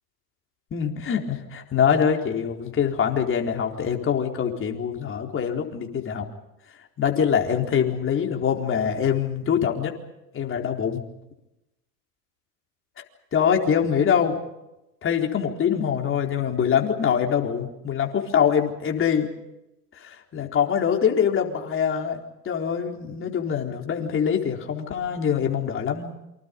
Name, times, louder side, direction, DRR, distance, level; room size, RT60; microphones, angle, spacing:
voice 1, 0.7-6.3 7.0-9.9 10.3-11.0 13.0-13.1 13.3-14.4 15.0-19.3 19.9-22.2 22.4-26.1, left 7 dB, 25° left, 2 dB, 4.2 m, -24 dB
28.5 x 25.5 x 5.4 m, 0.92 s
hypercardioid pair, 110°, 49 cm